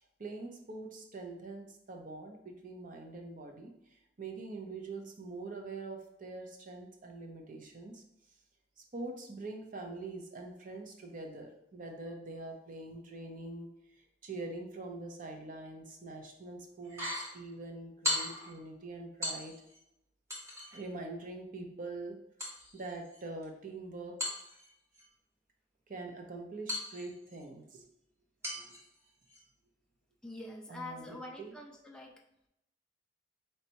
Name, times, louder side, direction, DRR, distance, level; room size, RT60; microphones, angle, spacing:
voice 1, 0.2-8.0 8.8-13.7 14.0-19.5 20.7-22.2 22.7-24.3 25.9-27.9 28.5-28.7 30.7-31.5, right 2 dB, 50° right, 3 dB, 0.7 m, -44 dB
sound 1, 16.8-17.3 18.0-18.5 19.2-19.8 20.3-20.8 22.4-23.4 24.2-25.0 26.7-27.4 28.4-28.9 29.3-29.4, left 1 dB, 15° right, 1.2 m, -38 dB
voice 2, 30.2-32.2, left 2 dB, 5° left, 0 dB, 0.3 m, -45 dB
4.3 x 3.2 x 2.9 m, 0.81 s
head